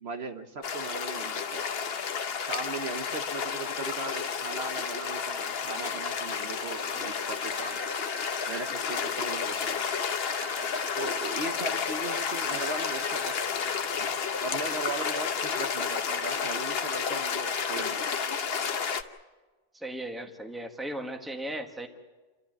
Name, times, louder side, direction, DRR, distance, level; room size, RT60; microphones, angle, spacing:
voice 1, 0.0-1.6 2.5-7.9 8.5-9.9 11.0-13.3 13.6-13.7 14.4-18.0, right 3 dB, 60° right, 7 dB, 1.3 m, -38 dB
sound 1, 0.6-19.0, left 6 dB, 55° left, 1.1 m, -31 dB
sound 2, 7.4-8.7 9.7-11.1 12.1-13.5 14.8-15.2 16.2-16.5 17.5-17.9, right 2 dB, 85° right, 4.0 m, -44 dB
voice 2, 19.7-21.9, right 1 dB, ahead, 4 dB, 1.4 m, -36 dB
29.0 x 12.5 x 9.0 m, 1.3 s
omnidirectional pair, 1.2 m